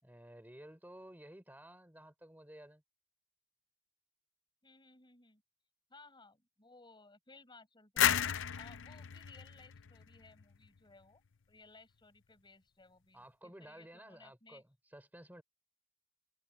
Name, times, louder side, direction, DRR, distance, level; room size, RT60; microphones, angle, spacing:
voice 1, 0.0-2.8 13.1-15.4, right 1 dB, 10° right, 4.0 m, -54 dB
voice 2, 4.6-5.4 5.9-8.1 8.6-11.2 11.5-14.6, left 3 dB, 20° left, 6.2 m, -60 dB
sound 1, 8.0-10.7, left 9 dB, 60° left, 0.7 m, -33 dB
head